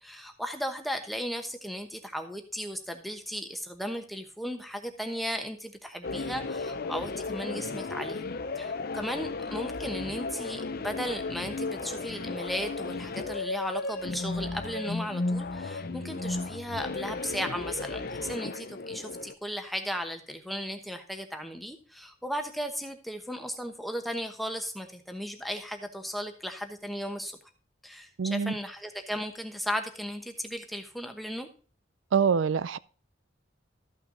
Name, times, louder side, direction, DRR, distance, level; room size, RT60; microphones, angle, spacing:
voice 1, 0.0-8.3 8.5-27.4 27.8-31.5, equal, ahead, 1.1 m, -36 dB
sound 1, 6.0-19.3, left 3 dB, 50° left, 0.6 m, -34 dB
voice 2, 28.2-28.6 32.1-32.8, right 6 dB, 90° right, 0.4 m, -25 dB
13.5 x 5.8 x 3.8 m
head